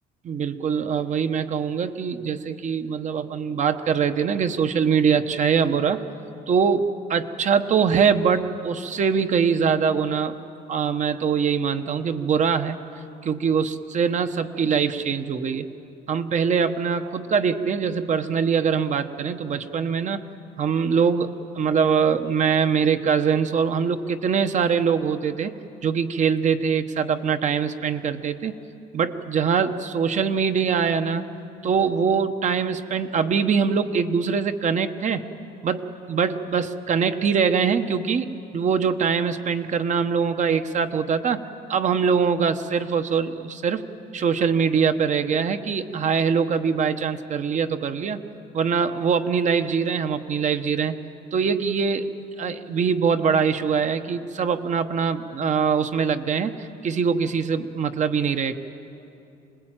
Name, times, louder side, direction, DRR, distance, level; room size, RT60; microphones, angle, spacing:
voice 1, 0.2-6.0 6.5-10.3 10.7-12.8 13.2-15.7 16.1-20.2 20.6-21.3 21.5-25.5 25.8-28.5 28.9-31.3 31.6-35.2 35.6-41.4 41.7-43.8 44.1-48.2 48.5-50.9 51.3-52.1 52.4-56.5 56.8-58.5, right 6 dB, 45° right, 9 dB, 1.2 m, -23 dB
26.0 x 20.0 x 9.0 m, 2.8 s
cardioid pair, 110°, 17 cm